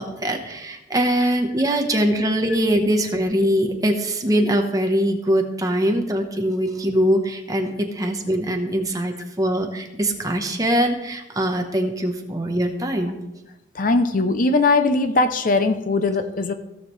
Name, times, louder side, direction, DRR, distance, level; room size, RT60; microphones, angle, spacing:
voice 1, 0.0-13.2, equal, 20° right, 4 dB, 1.0 m, -22 dB
voice 2, 13.7-16.5, left 3 dB, 45° left, 9 dB, 0.5 m, -20 dB
16.5 x 7.2 x 3.2 m, 0.98 s
head